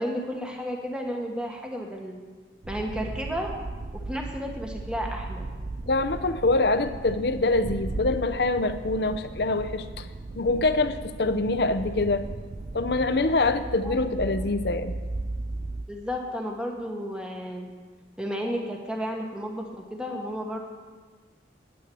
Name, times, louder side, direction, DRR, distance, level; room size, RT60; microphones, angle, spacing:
voice 1, 0.0-2.2 2.7-3.5 4.1-5.4 13.8-13.9 15.9-17.7 18.2-20.6, equal, 5° right, 1 dB, 1.2 m, -32 dB
sound 1, 2.6-15.8, right 2 dB, 40° right, 0.5 m, -36 dB
voice 2, 5.9-10.1 10.3-12.3 12.7-15.0, left 2 dB, 60° left, 9 dB, 0.7 m, -25 dB
9.8 x 9.3 x 7.6 m, 1.4 s
head